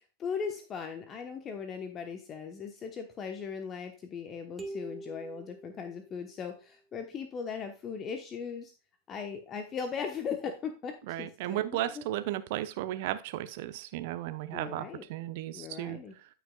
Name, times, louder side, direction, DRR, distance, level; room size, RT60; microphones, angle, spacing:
voice 1, 0.2-8.7 9.1-12.0 14.5-15.0 15.5-16.1, left 6 dB, 30° left, 6 dB, 1.0 m, -38 dB
sound 1, 4.6-6.5, right 2 dB, 10° right, 1.8 m, -44 dB
voice 2, 11.1-16.3, right 14 dB, 50° right, 12 dB, 0.8 m, -35 dB
13.5 x 5.9 x 2.3 m, 0.35 s
figure-of-eight pair, 95°, 0 cm